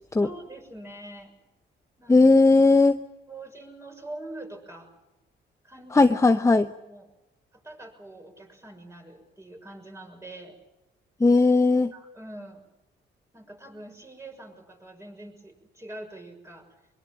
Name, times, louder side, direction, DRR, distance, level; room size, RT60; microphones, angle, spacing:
voice 1, 0.2-1.3 2.0-2.3 3.3-4.9 5.6-6.1 6.8-7.1 7.5-10.6 11.9-12.6 13.3-16.7, right 1 dB, 15° right, 3 dB, 6.5 m, -44 dB
voice 2, 2.1-3.0 5.9-6.7 11.2-11.9, left 3 dB, 15° left, 9 dB, 0.8 m, -17 dB
23.0 x 23.0 x 7.6 m, 1.0 s
cardioid pair, 90°, 20 cm